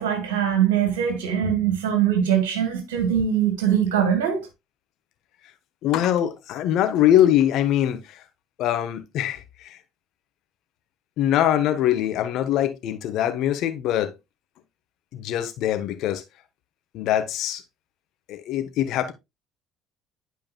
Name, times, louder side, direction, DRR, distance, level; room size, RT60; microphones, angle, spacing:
voice 1, 0.0-4.5, right 9 dB, 80° right, 1.8 m, -22 dB
voice 2, 5.8-8.2 8.6-9.8 11.2-14.1 15.1-16.2 16.9-17.6 18.3-19.1, left 11 dB, 65° left, 1.2 m, -23 dB
11.5 x 5.0 x 2.3 m
hypercardioid pair, 60°, 0 cm